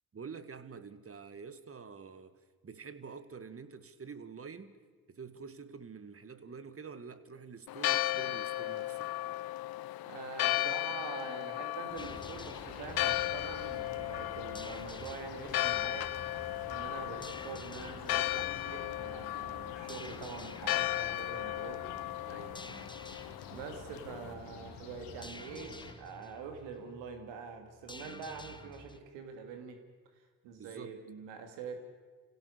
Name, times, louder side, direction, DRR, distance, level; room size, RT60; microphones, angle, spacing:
voice 1, 0.1-2.3 2.6-4.7 5.1-9.1 22.2-22.9 30.6-31.0, right 5 dB, 30° right, 12 dB, 1.8 m, -47 dB
Church bell, 7.7-24.3, left 16 dB, 55° left, 0.6 m, -36 dB
voice 2, 10.1-16.1 16.7-21.9 23.5-29.8 30.4-31.9, right 6 dB, 80° right, 5 dB, 2.9 m, -45 dB
sound 1, 11.9-25.9, left 5 dB, 85° left, 3.2 m, -49 dB
sound 2, 12.0-29.0, left 2 dB, 10° left, 1.2 m, -53 dB
27.5 x 16.5 x 6.8 m, 1.4 s
supercardioid pair, 65°, 43 cm